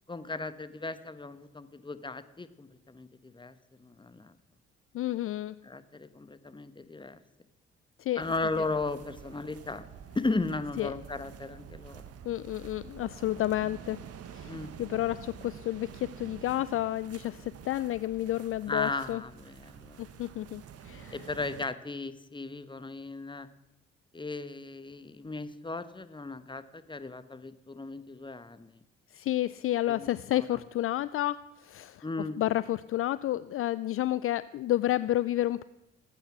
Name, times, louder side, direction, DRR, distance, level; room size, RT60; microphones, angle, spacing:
voice 1, 0.1-4.3 5.6-7.2 8.2-9.9 10.1-12.0 14.4-14.7 18.7-20.0 21.1-23.5 24.1-28.8 29.9-30.6 32.0-32.4, left 3 dB, 15° left, 12 dB, 1.1 m, -36 dB
voice 2, 4.9-5.6 8.0-8.2 10.8-10.9 12.2-14.0 14.3-14.5 14.8-19.2 20.0-21.2 29.1-32.0 32.4-35.6, left 14 dB, 50° left, 17 dB, 0.4 m, -30 dB
sound 1, 8.2-21.7, right 8 dB, 55° right, 1.0 m, -48 dB
18.5 x 8.8 x 6.1 m, 0.96 s
hypercardioid pair, 50°, 29 cm